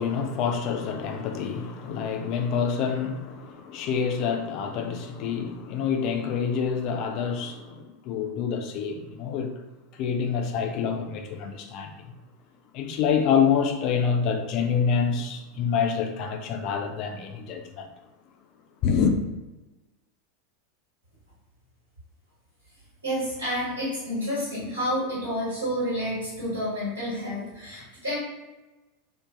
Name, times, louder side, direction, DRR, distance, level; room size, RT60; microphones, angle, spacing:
voice 1, 0.0-9.5 10.0-12.0 12.7-17.9 18.8-19.2, left 6 dB, 45° left, 0.3 m, -27 dB
voice 2, 23.0-28.2, equal, 80° right, 1.4 m, -29 dB
2.5 x 2.2 x 2.5 m
figure-of-eight pair, 85°, 0 cm